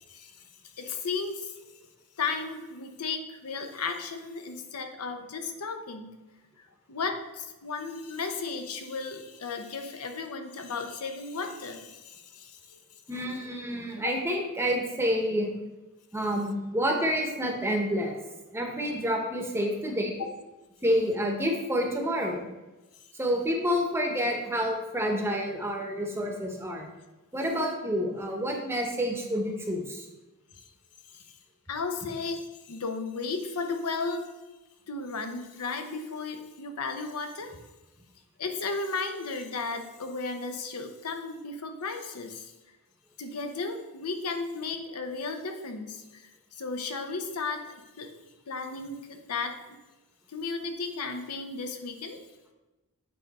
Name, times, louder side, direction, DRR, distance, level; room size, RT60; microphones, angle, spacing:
voice 1, 0.8-1.7 2.2-6.2 6.9-12.8 30.6-30.7 31.1-31.4 31.7-34.4 34.9-37.5 38.4-42.5 43.2-46.3 46.6-48.1 48.5-49.8 50.3-52.2, left 4 dB, 80° left, 6 dB, 0.8 m, -34 dB
voice 2, 13.1-15.5 16.1-18.2 18.5-20.1 20.8-22.5 23.1-26.9 27.3-30.1, equal, 10° right, 1 dB, 0.9 m, -28 dB
8.3 x 3.6 x 4.1 m, 1.1 s
head